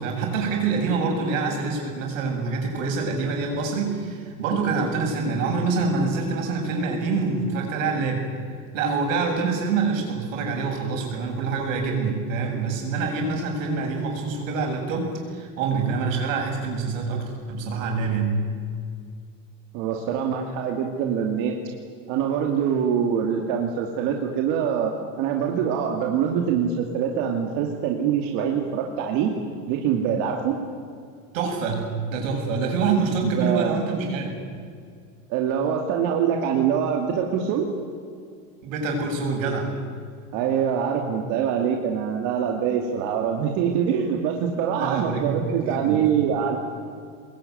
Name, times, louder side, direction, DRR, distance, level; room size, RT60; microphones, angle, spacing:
voice 1, 0.0-8.3 8.7-18.4 31.3-34.4 38.6-39.7 44.7-46.1, right 4 dB, 80° right, 2 dB, 7.4 m, -26 dB
voice 2, 19.7-21.5 22.1-29.3 29.7-30.5 33.2-33.7 35.3-37.7 40.3-46.6, right 8 dB, 50° right, 1 dB, 2.6 m, -24 dB
24.0 x 21.5 x 9.4 m, 2.2 s
supercardioid pair, 160°, 39 cm